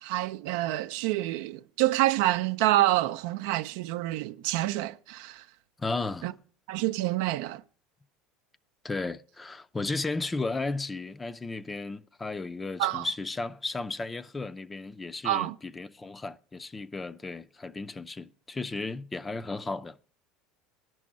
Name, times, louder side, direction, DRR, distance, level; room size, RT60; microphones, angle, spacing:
voice 1, 0.0-5.4 6.2-6.3 6.7-7.6 12.8-13.0 15.2-15.5, right 16 dB, 75° right, 0.5 m, -27 dB
voice 2, 5.8-6.4 8.8-20.0, left 3 dB, 15° left, 0.5 m, -34 dB
10.5 x 6.2 x 7.5 m
supercardioid pair, 100°, 0 cm